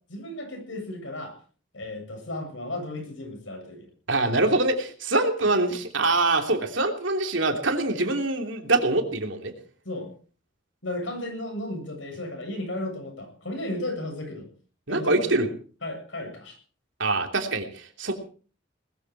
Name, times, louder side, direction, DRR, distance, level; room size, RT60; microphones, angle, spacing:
voice 1, 0.1-1.4 1.7-3.9 9.8-10.1 10.8-14.5 14.9-15.4 15.8-16.6 18.1-18.2, left 1 dB, 75° left, 4 dB, 7.6 m, -34 dB
voice 2, 4.1-9.5 14.9-15.5 17.0-18.1, right 2 dB, 70° right, 4 dB, 3.1 m, -24 dB
20.0 x 14.0 x 4.8 m, 0.41 s
head